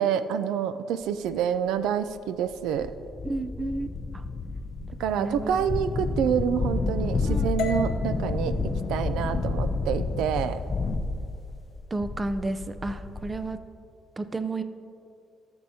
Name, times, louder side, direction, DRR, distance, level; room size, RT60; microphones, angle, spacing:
voice 1, 0.0-2.9 5.0-10.6, right 8 dB, 90° right, 12 dB, 0.4 m, -27 dB
sound 1, 1.3-1.4 2.1-2.2 2.5-13.5, left 3 dB, 35° left, 0.5 m, -30 dB
voice 2, 3.2-3.9 5.2-5.6 7.3-7.5 9.3-9.5 11.9-13.6 14.2-14.6, right 2 dB, 25° right, 11 dB, 0.5 m, -31 dB
sound 2, 7.6-11.7, left 3 dB, 85° left, 0.8 m, -37 dB
14.0 x 7.0 x 2.8 m, 2.5 s
cardioid pair, 90°, 0 cm